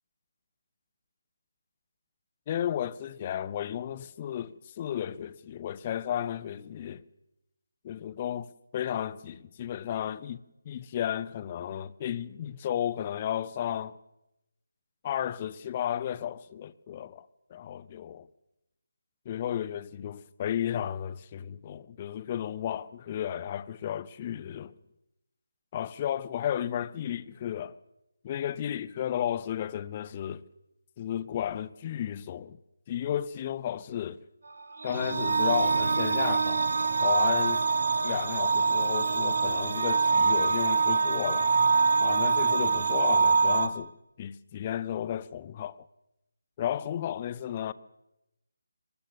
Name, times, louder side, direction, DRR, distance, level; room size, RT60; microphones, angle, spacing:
voice 1, 2.5-7.0 7.8-14.0 15.0-18.3 19.3-24.7 25.7-27.8 28.2-30.4 31.0-32.6 32.9-34.2 34.8-36.7 37.0-37.6 38.0-41.5 42.0-43.9 44.2-45.8 46.6-47.7, left 10 dB, 30° left, 0.7 m, -33 dB
sound 1, 34.6-43.7, right 4 dB, 55° right, 2.2 m, -25 dB
22.5 x 19.5 x 6.8 m
figure-of-eight pair, 155°, 0 cm